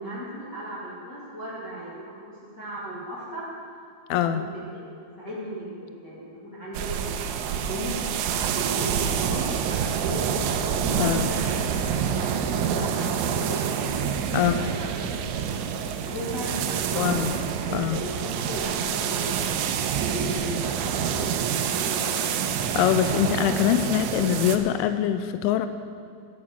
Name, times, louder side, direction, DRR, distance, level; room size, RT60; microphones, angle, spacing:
voice 1, 0.0-3.5 4.1-4.9 5.2-7.0 7.3-8.1 8.5-10.2 10.6-14.0 14.3-14.9 15.5-15.6 16.1-17.2 17.7-19.7 20.0-22.2, equal, 40° left, -8 dB, 1.6 m, -36 dB
voice 2, 4.1-4.4 11.0-11.3 14.3-14.6 17.0-17.3 17.7-18.0 22.7-25.7, left 10 dB, 85° left, 10 dB, 2.8 m, -23 dB
sound 1, 6.7-24.6, right 7 dB, 80° right, 3.2 m, -27 dB
13.5 x 9.5 x 7.3 m, 2.3 s
omnidirectional pair, 6.0 m